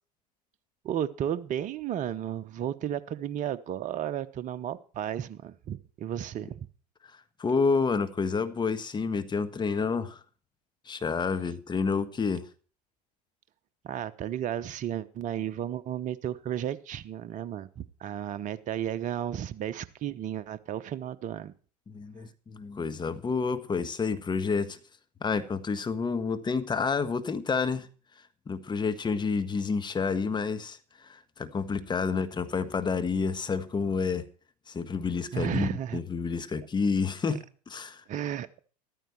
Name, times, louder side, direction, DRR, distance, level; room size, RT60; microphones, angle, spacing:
voice 1, 0.8-6.6 13.8-21.5 35.3-36.0 38.1-38.6, right 10 dB, 35° right, 1.0 m, -33 dB
voice 2, 7.4-10.2 10.9-12.4 21.9-24.8 25.2-27.9 28.5-34.2 34.7-38.0, left 5 dB, 20° left, 1.5 m, -29 dB
14.0 x 13.5 x 4.5 m
hypercardioid pair, 80°, 21 cm